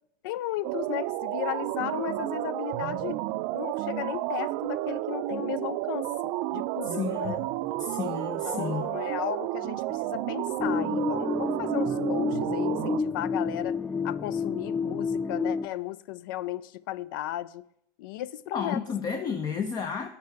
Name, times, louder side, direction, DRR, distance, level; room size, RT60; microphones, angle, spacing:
voice 1, 0.2-3.2 3.5-7.4 8.4-13.8 14.0-17.7 18.0-18.8, left 13 dB, 85° left, 0.4 m, -35 dB
sound 1, 0.6-13.0, right 16 dB, 65° right, 0.4 m, -31 dB
voice 2, 6.8-7.5 7.8-8.9 18.5-20.1, left 6 dB, 35° left, 0.7 m, -32 dB
sound 2, 10.6-15.7, left 4 dB, 10° left, 0.3 m, -29 dB
8.3 x 4.7 x 7.0 m
supercardioid pair, 110°, 11 cm